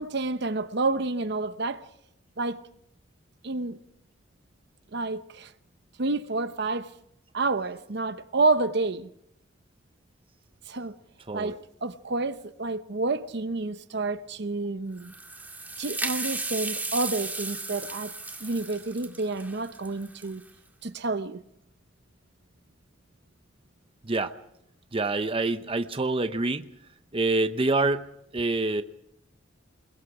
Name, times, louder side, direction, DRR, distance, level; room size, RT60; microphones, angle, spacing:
voice 1, 0.0-1.8 2.4-2.6 3.4-3.8 4.9-5.5 6.0-6.9 7.3-9.1 10.7-11.0 11.3-15.1 15.8-18.1 18.4-20.4 20.8-21.4, right 3 dB, 60° right, 0.8 m, -29 dB
sound 1, 15.0-20.5, right 3 dB, 10° right, 1.9 m, -35 dB
voice 2, 24.9-26.7 27.1-28.1 28.3-28.8, right 2 dB, 30° right, 0.7 m, -26 dB
28.5 x 21.5 x 4.9 m
head